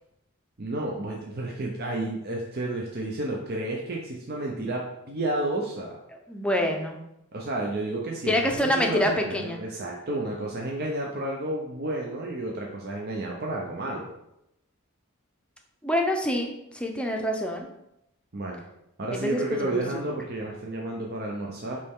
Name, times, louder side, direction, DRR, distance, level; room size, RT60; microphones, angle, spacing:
voice 1, 0.6-6.0 7.3-8.3 8.8-14.1 18.3-18.6 19.0-21.8, right 2 dB, 50° right, -1 dB, 0.8 m, -31 dB
voice 2, 6.1-7.0 8.3-9.6 15.8-17.7 19.1-19.8, left 1 dB, 5° left, 2 dB, 0.7 m, -26 dB
8.5 x 3.3 x 3.7 m, 0.83 s
head